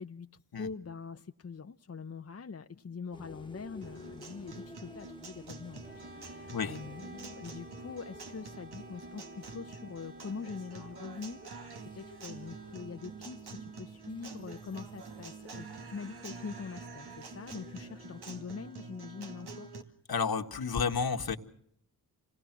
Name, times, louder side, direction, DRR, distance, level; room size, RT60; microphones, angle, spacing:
voice 1, 0.0-19.7, left 5 dB, 40° left, 0.8 m, -44 dB
sound 1, 3.1-18.4, left 1 dB, 10° left, 1.6 m, -55 dB
Guitar, 3.8-19.8, right 4 dB, 85° right, 2.2 m, -47 dB
Wind instrument woodwind instrument, 5.8-13.9, right 2 dB, 30° right, 2.7 m, -53 dB
voice 2, 20.1-21.4, left 5 dB, 70° left, 1.8 m, -31 dB
27.5 x 19.5 x 6.1 m
cardioid pair, 65°, 38 cm